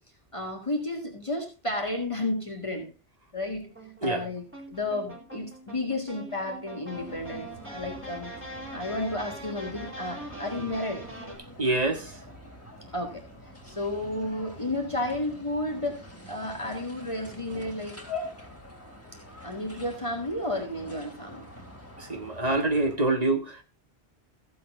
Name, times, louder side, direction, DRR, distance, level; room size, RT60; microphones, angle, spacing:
voice 1, 0.3-2.9 3.3-3.7 4.0-8.3 8.7-11.0 12.9-13.2 13.6-16.0 16.3-18.3 19.4-21.4, left 1 dB, 30° left, 2.1 m, -32 dB
sound 1, 3.6-11.4, right 1 dB, 10° right, 3.5 m, -43 dB
sound 2, 6.9-23.0, equal, 10° left, 3.0 m, -47 dB
voice 2, 11.6-12.1 22.0-23.6, right 2 dB, 35° right, 1.6 m, -26 dB
15.0 x 7.7 x 3.7 m
omnidirectional pair, 1.2 m